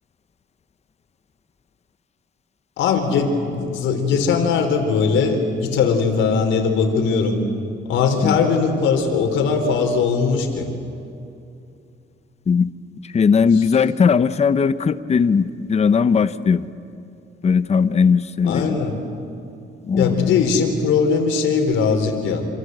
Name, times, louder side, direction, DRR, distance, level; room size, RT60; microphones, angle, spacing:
voice 1, 2.8-7.4 7.8-10.7 18.4-19.0 19.9-22.5, left 5 dB, 90° left, 5 dB, 4.2 m, -20 dB
voice 2, 13.0-16.7 17.4-18.8 19.9-20.3, left 6 dB, 35° left, 13 dB, 0.9 m, -18 dB
27.5 x 27.0 x 8.0 m, 2.6 s
cardioid pair, 110°, 19 cm